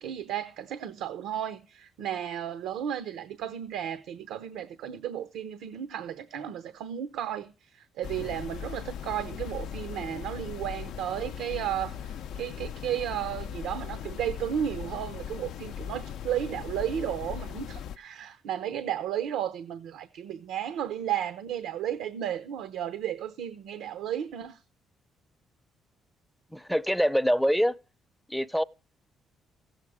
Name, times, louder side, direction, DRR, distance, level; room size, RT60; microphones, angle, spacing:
voice 1, 0.0-24.6, right 10 dB, 90° right, 0.7 m, -34 dB
sound 1, 8.0-18.0, left 9 dB, 75° left, 0.4 m, -39 dB
voice 2, 26.5-27.7 28.3-28.6, equal, ahead, 0.5 m, -24 dB
15.5 x 7.4 x 4.7 m
cardioid pair, 105°, 0 cm